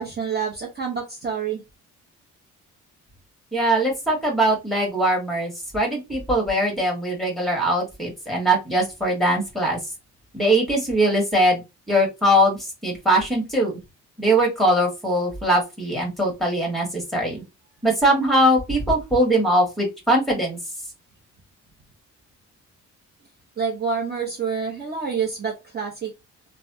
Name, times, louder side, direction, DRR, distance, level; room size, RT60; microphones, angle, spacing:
voice 1, 0.0-1.6 23.6-26.1, right 6 dB, 35° right, -1 dB, 0.9 m, -27 dB
voice 2, 3.5-9.8 10.3-11.6 11.9-13.8 14.2-17.4 17.8-20.6, right 1 dB, ahead, 0 dB, 1.8 m, -21 dB
3.2 x 2.3 x 2.7 m, 0.23 s
cardioid pair, 90°, 30 cm